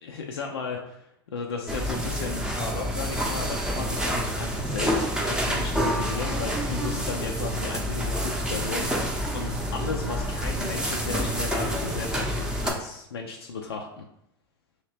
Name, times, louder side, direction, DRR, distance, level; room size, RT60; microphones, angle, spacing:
voice 1, 0.0-14.0, left 4 dB, 85° left, 1 dB, 0.4 m, -35 dB
sound 1, 1.7-12.7, equal, 5° right, 0.6 m, -28 dB
2.9 x 2.8 x 3.2 m, 0.79 s
hypercardioid pair, 90°, 13 cm